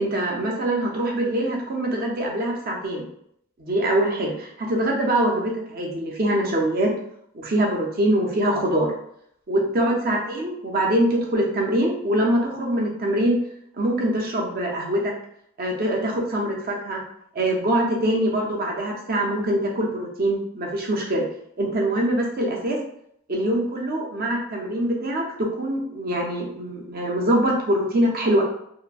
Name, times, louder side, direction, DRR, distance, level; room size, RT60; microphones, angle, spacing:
voice 1, 0.0-3.1 3.6-6.9 7.4-8.9 9.5-13.4 13.8-15.1 15.6-17.0 17.3-21.2 21.6-22.8 23.3-28.4, right 1 dB, 45° right, 0 dB, 0.6 m, -23 dB
2.9 x 2.4 x 2.2 m, 0.71 s
head